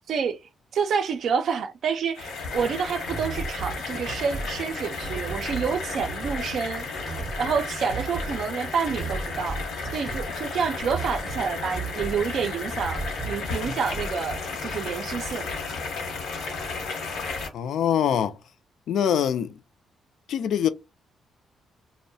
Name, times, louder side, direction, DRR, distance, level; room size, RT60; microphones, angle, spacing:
voice 1, 0.1-0.4 0.7-6.9 7.4-9.6 9.9-15.5, right 6 dB, 55° right, 0.4 m, -28 dB
sound 1, 2.1-17.5, left 4 dB, 90° left, 0.9 m, -33 dB
sound 2, 3.1-3.8 4.1-4.5 5.0-5.7 6.0-6.4 6.9-7.6 7.9-8.4 8.9-10.3 10.8-11.4 11.7-12.2 12.7-13.4 13.7-14.1, right 4 dB, 15° right, 0.6 m, -35 dB
voice 2, 17.5-18.4 18.9-19.6 20.3-20.7, left 9 dB, 65° left, 0.3 m, -23 dB
2.6 x 2.1 x 2.6 m
cardioid pair, 160°, 0 cm